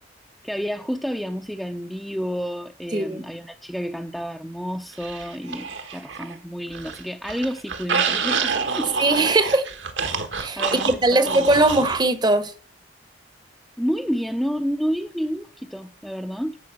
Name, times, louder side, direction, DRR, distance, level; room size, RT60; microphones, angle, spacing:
voice 1, 0.4-9.0 10.6-11.5 13.8-16.6, equal, ahead, 0.6 m, -30 dB
voice 2, 2.9-3.2 9.0-9.7 10.4-12.5, right 2 dB, 20° right, 0.9 m, -20 dB
sound 1, 5.0-6.3 6.7-12.0, right 5 dB, 65° right, 1.3 m, -27 dB
13.5 x 4.9 x 7.4 m
head